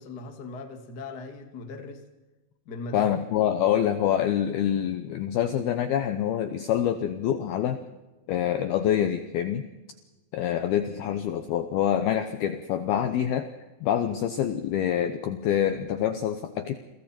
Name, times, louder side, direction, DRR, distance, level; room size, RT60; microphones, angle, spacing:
voice 1, 0.0-2.0 2.6-3.1, left 3 dB, 55° left, 5 dB, 1.1 m, -39 dB
voice 2, 2.9-7.8 8.3-9.7 10.3-13.5 13.8-16.8, left 10 dB, 90° left, 9 dB, 2.2 m, -26 dB
29.5 x 23.0 x 4.4 m, 1.1 s
omnidirectional pair, 5.8 m